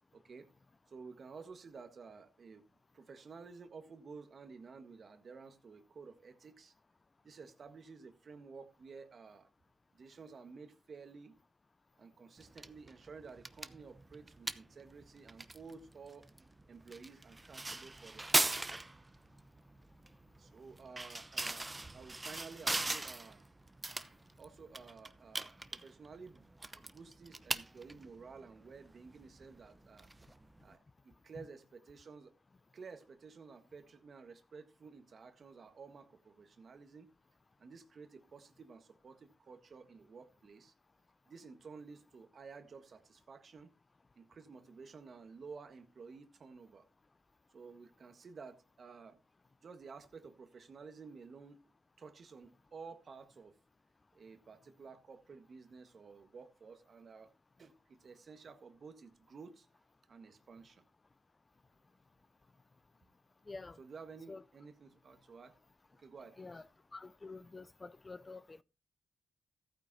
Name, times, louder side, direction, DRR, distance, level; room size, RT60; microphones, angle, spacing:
voice 1, 0.1-0.5 0.9-2.6 2.9-6.7 7.2-9.5 9.9-11.4 12.0-16.3 16.7-18.8 20.4-23.4 24.4-26.5 26.8-30.1 30.6-30.8 31.0-32.3 32.7-37.1 37.6-40.7 41.3-43.7 44.1-46.9 47.5-49.2 49.6-51.6 52.0-53.6 54.1-57.3 57.6-59.7 60.1-60.8 63.8-65.6 66.0-66.6, right 5 dB, 60° right, 1.5 m, -53 dB
sound 1, 12.4-30.7, right 2 dB, 25° right, 0.8 m, -41 dB
voice 2, 63.5-63.8 64.3-64.4 66.4-68.6, left 3 dB, 35° left, 0.5 m, -48 dB
14.5 x 9.0 x 2.8 m
supercardioid pair, 50°, 0 cm